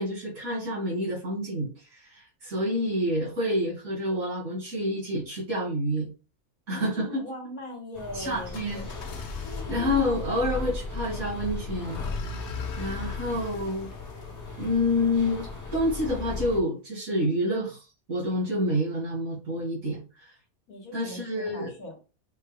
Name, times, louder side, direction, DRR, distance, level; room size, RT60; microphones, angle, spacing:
voice 1, 0.0-6.1 6.7-7.2 8.1-8.8 9.2-12.0 12.8-13.9 14.6-20.3 20.9-21.7, left 1 dB, 75° right, -7 dB, 3.0 m, -28 dB
voice 2, 6.7-9.0 9.4-9.9 20.7-22.0, left 1 dB, 80° left, 1 dB, 1.8 m, -40 dB
sound 1, 7.9-16.6, left 3 dB, 20° left, 0.6 m, -37 dB
sound 2, 8.5-15.4, left 4 dB, 60° left, 0.9 m, -40 dB
6.5 x 2.3 x 3.4 m, 0.34 s
omnidirectional pair, 1.5 m